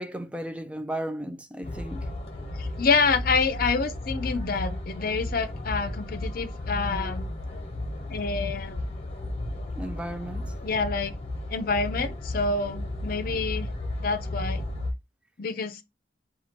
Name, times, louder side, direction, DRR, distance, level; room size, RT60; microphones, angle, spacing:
voice 1, 0.0-2.1 9.7-10.5, right 1 dB, 5° right, 0.4 m, -35 dB
sound 1, 1.6-14.9, left 1 dB, 35° left, 0.9 m, -34 dB
voice 2, 2.6-7.2 8.1-8.8 10.6-11.2 11.5-13.7 14.0-14.6 15.4-15.8, left 4 dB, 50° left, 0.6 m, -27 dB
4.3 x 2.4 x 4.4 m
head